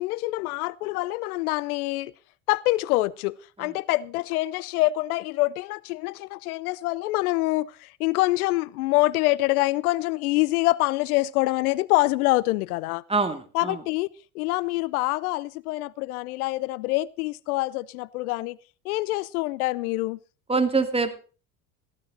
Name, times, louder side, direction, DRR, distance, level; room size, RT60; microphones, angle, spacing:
voice 1, 0.0-2.1 2.5-13.0 13.5-18.6 18.8-20.2, left 19 dB, 80° left, 0.6 m, -25 dB
voice 2, 13.1-13.8 20.5-21.2, right 4 dB, 15° right, 2.4 m, -24 dB
15.0 x 12.0 x 4.1 m
hypercardioid pair, 70°, 43 cm